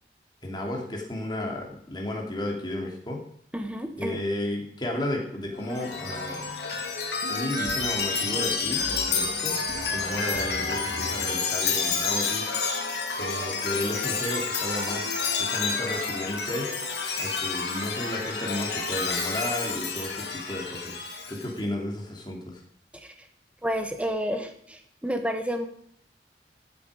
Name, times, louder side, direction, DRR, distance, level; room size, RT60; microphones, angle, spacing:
voice 1, 0.4-3.2 4.0-6.5 7.3-9.6 9.9-12.5 13.2-15.0 15.4-16.7 17.2-21.0 21.3-22.6, left 1 dB, 25° left, 0 dB, 2.9 m, -33 dB
voice 2, 3.5-4.2 22.9-23.3 23.6-25.7, equal, 5° right, 6 dB, 1.3 m, -30 dB
Chime, 5.6-21.5, left 4 dB, 70° left, 2.6 m, -29 dB
14.5 x 8.3 x 5.1 m, 0.67 s
head